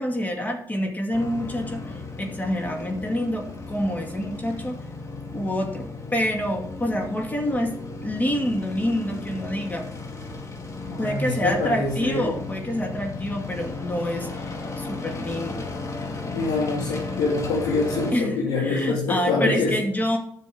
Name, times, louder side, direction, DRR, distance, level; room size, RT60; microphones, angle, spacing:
voice 1, 0.0-4.8 5.3-7.7 8.0-9.9 11.0-14.5 14.8-15.7 18.1-20.2, equal, 20° left, 2 dB, 2.1 m, -27 dB
sound 1, 1.1-18.1, left 3 dB, 40° left, 2.3 m, -35 dB
voice 2, 10.9-12.3 16.3-19.7, left 3 dB, 85° left, -5 dB, 2.4 m, -25 dB
9.9 x 6.9 x 3.8 m, 0.67 s
supercardioid pair, 65°, 9 cm